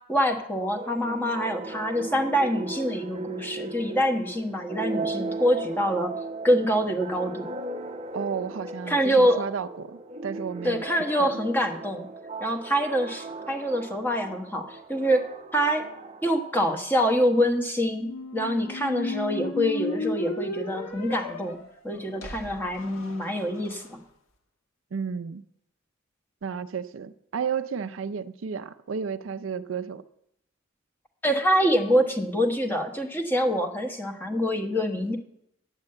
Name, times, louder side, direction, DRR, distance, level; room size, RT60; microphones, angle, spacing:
voice 1, 0.1-6.1 6.4-7.5 8.9-9.4 10.6-12.1 12.4-15.8 16.2-21.6 21.8-24.0 31.2-35.2, equal, 10° left, 4 dB, 1.1 m, -25 dB
sound 1, 0.7-17.1, right 3 dB, 30° right, 0.7 m, -37 dB
voice 2, 8.1-10.8 24.9-25.4 26.4-30.0, right 6 dB, 70° right, 12 dB, 0.5 m, -32 dB
sound 2, 17.9-23.8, left 3 dB, 80° left, 1.4 m, -35 dB
9.9 x 7.2 x 7.7 m, 0.78 s
head